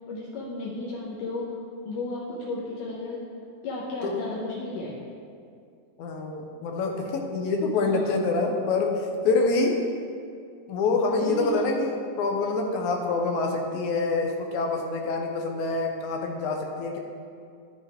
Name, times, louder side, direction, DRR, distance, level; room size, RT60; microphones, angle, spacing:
voice 1, 0.1-1.5 1.9-3.2 3.6-5.0 7.7-8.2 11.2-11.6, left 2 dB, 90° left, -6 dB, 2.7 m, -33 dB
voice 2, 6.0-9.8 10.7-17.0, left 3 dB, 75° left, 2 dB, 2.2 m, -26 dB
11.5 x 7.3 x 3.5 m, 2.3 s
omnidirectional pair, 3.6 m